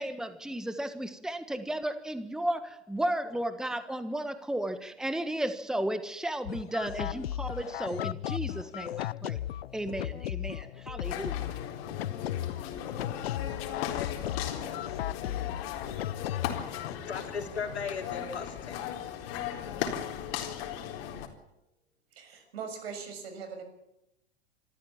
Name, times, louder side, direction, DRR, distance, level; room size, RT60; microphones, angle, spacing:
voice 1, 0.0-9.4 9.7-11.5, right 1 dB, ahead, 10 dB, 1.4 m, -34 dB
sound 1, 6.5-17.0, left 12 dB, 70° left, 0.7 m, -36 dB
sound 2, 11.0-21.3, left 9 dB, 45° left, 4.0 m, -37 dB
voice 2, 14.4-18.8, left 5 dB, 85° left, 4 dB, 3.6 m, -41 dB
voice 3, 22.1-23.6, right 6 dB, 70° right, 7 dB, 6.6 m, -40 dB
26.0 x 14.0 x 7.4 m, 0.89 s
hypercardioid pair, 100°, 32 cm